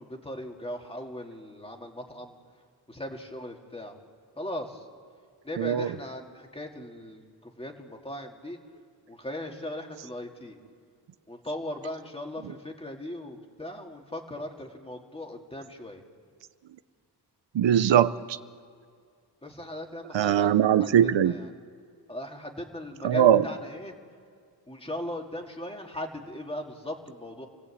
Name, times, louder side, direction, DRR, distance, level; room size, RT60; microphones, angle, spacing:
voice 1, 0.0-2.3 2.9-4.0 4.4-4.8 5.4-8.6 9.1-10.6 11.3-16.0 19.4-20.5 20.8-21.5 22.1-23.9 24.7-27.5, left 1 dB, 15° left, 2 dB, 2.3 m, -38 dB
voice 2, 5.6-5.9 12.4-12.5 17.5-18.4 20.1-21.3 23.0-23.5, right 10 dB, 90° right, 13 dB, 0.8 m, -21 dB
29.5 x 18.5 x 8.5 m, 2.2 s
wide cardioid pair, 170°, 43 cm